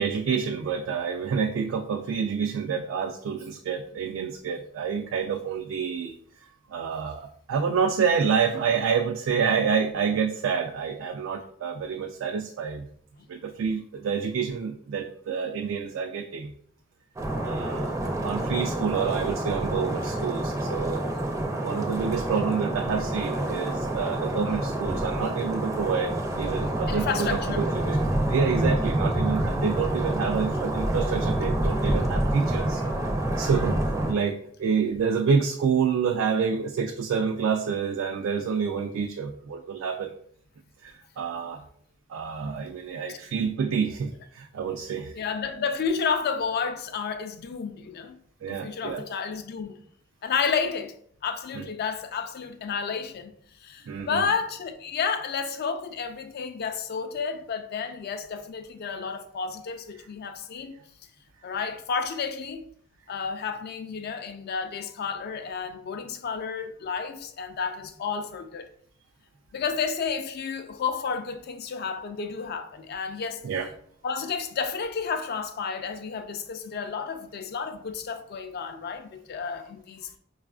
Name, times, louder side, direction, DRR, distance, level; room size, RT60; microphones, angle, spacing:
voice 1, 0.0-6.2 6.4-12.9 13.3-16.5 17.4-17.9 18.2-21.0 21.6-32.8 33.4-40.1 40.8-41.6 42.1-45.1 48.4-49.0 51.6-51.7 53.9-54.3 73.4-73.7, right 6 dB, 80° right, 0.3 m, -28 dB
sound 1, 17.2-34.1, right 1 dB, 15° right, 0.4 m, -27 dB
voice 2, 26.9-27.7 43.1-43.2 45.1-48.2 48.5-49.8 50.2-50.9 51.2-53.3 53.6-60.8 61.4-62.7 63.1-68.7 69.5-73.4 74.0-80.1, left 5 dB, 55° left, 0.4 m, -31 dB
4.7 x 2.3 x 2.3 m
head